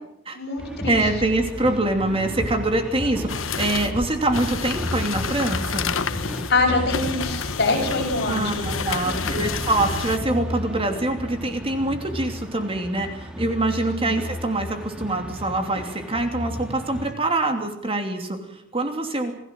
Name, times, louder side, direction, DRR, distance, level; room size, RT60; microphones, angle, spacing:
voice 1, 0.3-1.0 6.5-9.4 13.8-14.1, left 3 dB, 55° left, 2 dB, 7.3 m, -25 dB
sound 1, 0.6-17.1, equal, 5° right, 2.3 m, -33 dB
voice 2, 0.9-5.9 8.3-19.3, right 2 dB, 30° right, 5 dB, 3.0 m, -24 dB
sound 2, 3.3-10.2, left 6 dB, 75° left, 1.2 m, -30 dB
28.0 x 16.5 x 7.8 m, 0.83 s
head